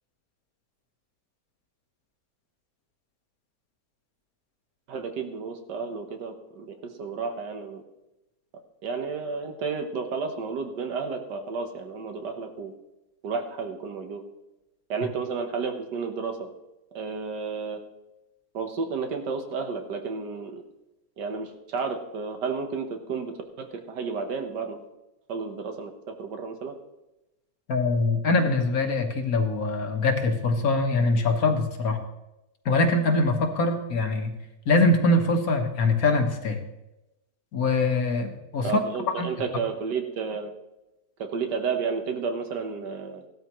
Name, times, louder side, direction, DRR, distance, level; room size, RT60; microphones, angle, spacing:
voice 1, 4.9-7.8 8.8-12.7 13.2-14.2 14.9-16.5 16.9-17.8 18.5-20.6 21.2-24.8 25.3-26.7 38.6-40.5 41.2-43.2, right 5 dB, 80° right, 5 dB, 1.8 m, -32 dB
voice 2, 27.7-32.0 32.6-34.3 34.7-36.6 37.5-38.7 39.2-39.3, left 2 dB, 60° left, 5 dB, 1.5 m, -23 dB
16.0 x 12.5 x 3.1 m, 0.97 s
omnidirectional pair, 1.8 m